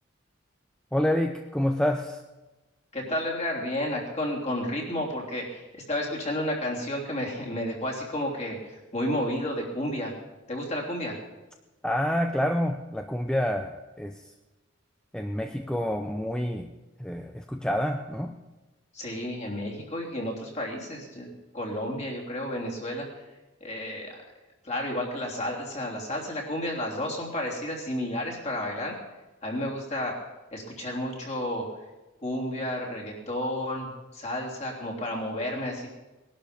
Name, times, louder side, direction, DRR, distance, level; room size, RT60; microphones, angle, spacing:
voice 1, 0.9-2.2 11.8-14.3 15.1-16.7 17.0-18.4, equal, 5° left, 5 dB, 0.6 m, -28 dB
voice 2, 2.9-10.1 10.5-11.2 18.9-23.2 23.6-24.2 24.6-28.9 29.4-30.2 30.5-31.7 32.2-35.9, left 1 dB, 35° left, -1 dB, 3.2 m, -31 dB
20.0 x 11.5 x 5.3 m, 1.1 s
head